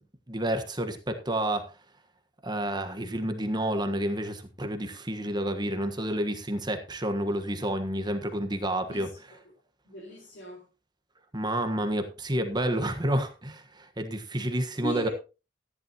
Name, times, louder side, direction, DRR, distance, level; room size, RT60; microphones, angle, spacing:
voice 1, 0.3-1.7 2.4-9.1 11.3-15.1, right 1 dB, 25° right, 1.4 m, -29 dB
voice 2, 8.9-9.4 9.8-10.7 14.8-15.1, right 1 dB, 65° left, 4.3 m, -38 dB
13.5 x 11.0 x 3.0 m
head